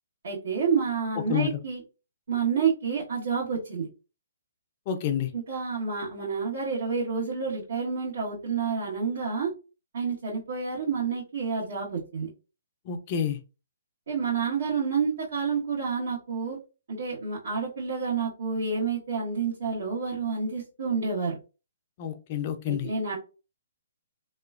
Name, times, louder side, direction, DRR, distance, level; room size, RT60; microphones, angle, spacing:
voice 1, 0.2-1.8 2.3-3.9 5.3-9.5 9.9-12.3 14.1-16.6 16.9-21.4 22.6-23.2, right 5 dB, 65° right, -8 dB, 1.5 m, -29 dB
voice 2, 4.9-5.3 12.9-13.4 22.0-22.9, left 9 dB, 30° left, 7 dB, 0.4 m, -28 dB
2.9 x 2.2 x 2.4 m, 0.31 s
hypercardioid pair, 155°, 0 cm